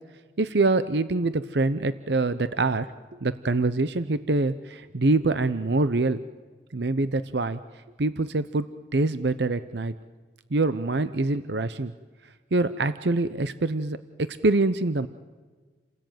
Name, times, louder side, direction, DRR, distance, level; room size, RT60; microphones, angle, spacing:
voice 1, 0.4-6.2 6.7-7.6 8.0-8.7 8.9-9.9 10.5-11.9 12.5-15.1, right 2 dB, 75° right, 13 dB, 0.8 m, -25 dB
29.5 x 19.0 x 9.2 m, 1.4 s
head